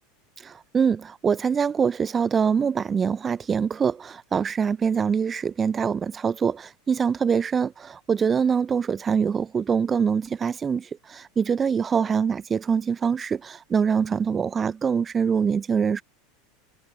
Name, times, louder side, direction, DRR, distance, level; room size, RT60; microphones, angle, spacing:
voice 1, 0.4-16.0, right 6 dB, 25° right, 0.8 m, -24 dB
figure-of-eight pair, 80°, 0 cm